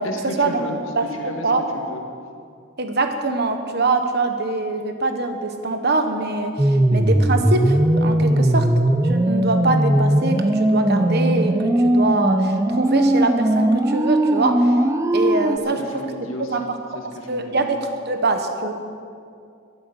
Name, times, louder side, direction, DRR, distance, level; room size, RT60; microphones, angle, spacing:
voice 1, 0.0-2.0 8.3-8.5 15.6-17.5, left 2 dB, 80° left, 2 dB, 1.9 m, -34 dB
voice 2, 1.0-1.6 2.8-8.7 9.0-14.8 15.1-15.8 16.5-16.6 17.3-17.8 18.1-18.7, right 3 dB, 55° right, 6 dB, 1.3 m, -23 dB
sound 1, 6.6-15.6, right 1 dB, 15° right, 0.5 m, -19 dB
12.5 x 11.0 x 7.2 m, 2.4 s
head